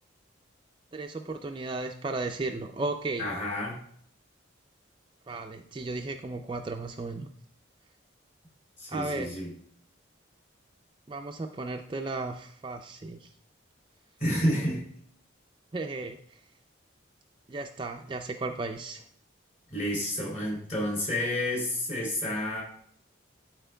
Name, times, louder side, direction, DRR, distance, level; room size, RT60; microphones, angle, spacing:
voice 1, 0.9-3.3 5.3-7.3 8.9-9.4 11.1-13.3 15.7-16.4 17.5-19.0, right 3 dB, 25° right, 5 dB, 0.3 m, -35 dB
voice 2, 3.2-3.8 8.8-9.5 14.2-14.8 19.7-22.6, left 1 dB, 35° left, -4 dB, 2.9 m, -30 dB
12.5 x 4.4 x 2.3 m, 0.64 s
head